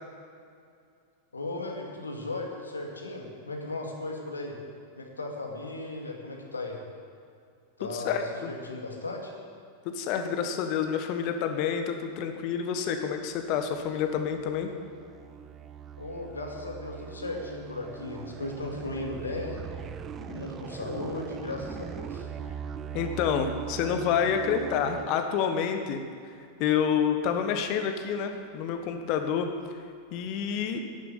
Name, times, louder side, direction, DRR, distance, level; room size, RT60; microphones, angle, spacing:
voice 1, 1.3-4.6 5.0-6.8 7.8-9.3 16.0-19.6 20.2-22.3, left 2 dB, 75° left, 0 dB, 2.3 m, -36 dB
voice 2, 7.9-8.5 9.8-14.7 22.9-26.0 26.6-29.5 30.1-30.8, left 7 dB, 45° left, 6 dB, 1.4 m, -28 dB
sound 1, 13.7-25.1, right 8 dB, 25° right, 0.7 m, -40 dB
11.0 x 10.5 x 8.7 m, 2.4 s
figure-of-eight pair, 90°, 0 cm